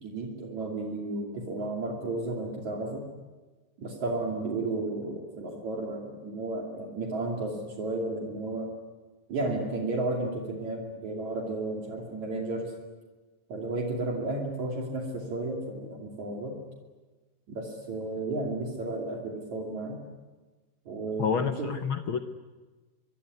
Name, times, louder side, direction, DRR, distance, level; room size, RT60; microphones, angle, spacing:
voice 1, 0.0-3.0 3.8-8.7 9.3-12.7 13.5-16.6 17.5-20.0 20.9-21.7, right 2 dB, 60° right, 0 dB, 3.9 m, -33 dB
voice 2, 21.2-22.2, left 6 dB, 90° left, 8 dB, 1.1 m, -29 dB
25.5 x 23.0 x 9.6 m, 1.3 s
omnidirectional pair, 3.9 m